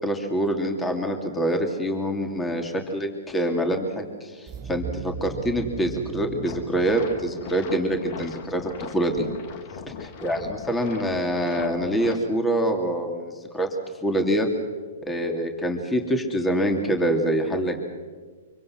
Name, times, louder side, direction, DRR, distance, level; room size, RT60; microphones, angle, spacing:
voice 1, 0.0-9.3 10.0-13.7 14.0-14.5 15.0-17.8, right 1 dB, 10° left, 4 dB, 2.7 m, -25 dB
sound 1, 4.5-9.3, right 8 dB, 30° right, 1.1 m, -39 dB
sound 2, 6.4-12.2, left 6 dB, 45° left, 2.2 m, -40 dB
25.5 x 24.5 x 6.1 m, 1.5 s
hypercardioid pair, 120°, 0 cm